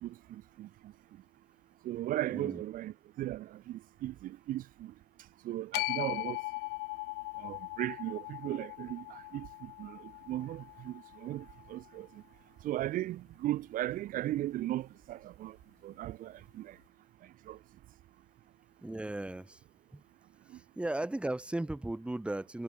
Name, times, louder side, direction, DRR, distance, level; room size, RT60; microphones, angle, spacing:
voice 1, 0.0-0.7 1.8-4.9 5.4-6.4 7.4-12.1 12.6-15.6 15.8-16.7 17.5-17.6, right 14 dB, 45° right, 2.5 m, -37 dB
voice 2, 2.3-2.6 18.8-19.6 19.9-20.0 20.5-22.6, right 1 dB, 5° right, 4.1 m, -36 dB
sound 1, 5.7-12.0, left 28 dB, 60° left, 3.5 m, -40 dB
supercardioid pair, 105°, 20 cm